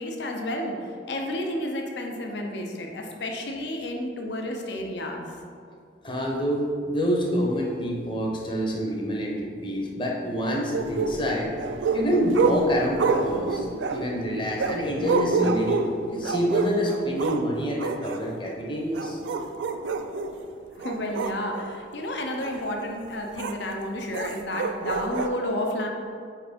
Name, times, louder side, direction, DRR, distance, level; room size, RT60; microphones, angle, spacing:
voice 1, 0.0-5.4 20.7-25.9, left 1 dB, 70° left, 2 dB, 0.6 m, -31 dB
voice 2, 6.0-11.5 11.9-15.9 16.1-19.2, equal, 25° left, -1 dB, 0.8 m, -27 dB
sound 1, 10.7-17.5 17.8-18.2 18.8-20.4 20.8-21.7 22.4-22.6 23.4-23.6 24.1-25.3, right 4 dB, 80° right, 0.4 m, -27 dB
4.6 x 4.3 x 5.1 m, 2.3 s
head